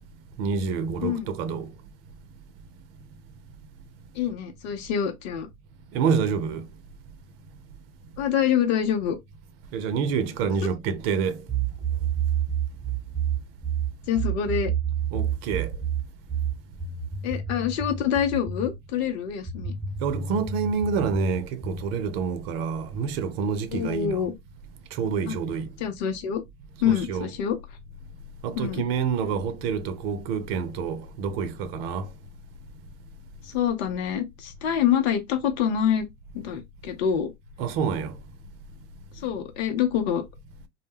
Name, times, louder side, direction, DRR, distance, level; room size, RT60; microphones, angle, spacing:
voice 1, 0.4-1.7 5.9-6.7 9.7-11.4 15.1-15.7 20.0-24.2 24.9-25.7 26.9-27.3 28.4-32.1 37.6-38.2, right 6 dB, 55° right, 0.6 m, -27 dB
voice 2, 4.1-5.5 8.2-9.2 14.1-14.7 17.2-19.7 23.7-24.3 25.3-25.4 25.8-26.4 26.8-27.6 28.6-28.8 33.5-36.1 36.3-37.3 39.2-40.2, left 8 dB, 60° left, 0.6 m, -26 dB
sound 1, 11.5-18.8 19.5-21.9, right 8 dB, 10° right, 0.5 m, -29 dB
2.1 x 2.1 x 3.1 m
hypercardioid pair, 90°, 36 cm